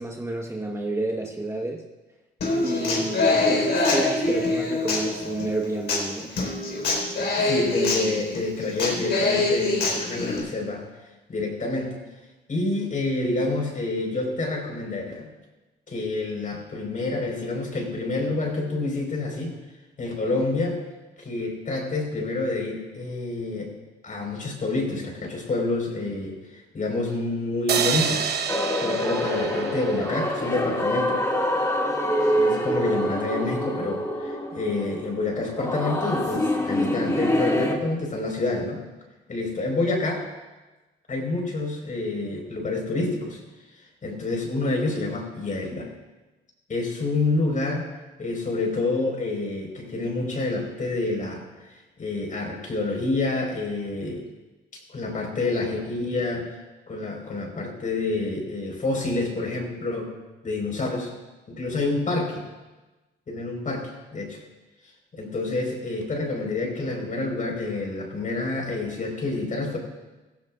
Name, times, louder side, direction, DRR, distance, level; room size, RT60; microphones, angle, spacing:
voice 1, 0.0-1.8 2.6-6.3, right 2 dB, 15° right, 0 dB, 1.1 m, -30 dB
Human voice / Acoustic guitar, 2.4-10.4, left 2 dB, 60° left, 4.1 m, -25 dB
voice 2, 7.4-10.8 11.3-12.0 12.5-15.3 15.9-19.6 20.0-20.8 21.2-23.7 24.0-26.4 26.7-28.3 28.7-31.2 32.4-38.8 39.3-40.2 41.1-43.4 44.0-45.9 46.7-47.9 48.2-51.4 52.0-54.2 54.9-56.5 56.9-60.1 60.4-61.1 61.5-62.5 63.3-64.4 65.1-69.8, left 2 dB, 40° left, 0 dB, 4.3 m, -28 dB
sound 1, 27.7-31.0, right 7 dB, 55° right, 1.0 m, -29 dB
sound 2, 28.5-37.8, equal, 15° left, 1.8 m, -26 dB
16.5 x 15.5 x 2.4 m, 1.1 s
cardioid pair, 90°, 20 cm